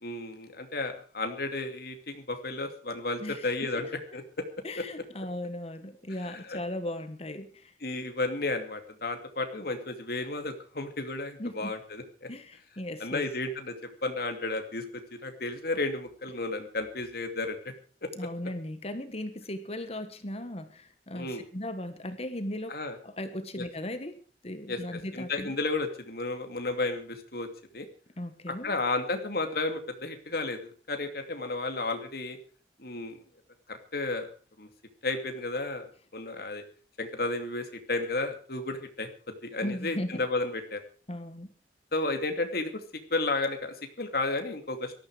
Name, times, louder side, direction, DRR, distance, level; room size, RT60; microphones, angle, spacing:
voice 1, 0.0-3.9 4.1-4.5 4.8-4.9 6.2-6.6 7.8-12.3 13.0-13.7 14.0-14.8 15.1-17.7 18.0-18.1 21.1-21.4 22.7-23.0 23.5-23.7 24.7-27.5 27.7-27.9 28.5-32.4 32.8-33.2 33.7-34.3 34.6-34.7 35.0-36.6 37.0-40.8 41.9-42.8 43.1-44.9, left 2 dB, 60° left, 6 dB, 2.5 m, -33 dB
voice 2, 3.2-3.7 4.6-7.7 11.4-11.7 12.3-13.3 18.2-21.3 21.5-22.7 23.0-24.2 24.4-25.5 28.2-28.7 39.6-40.2 41.1-41.5, left 1 dB, 35° left, 10 dB, 1.4 m, -37 dB
18.5 x 13.5 x 4.9 m, 0.39 s
head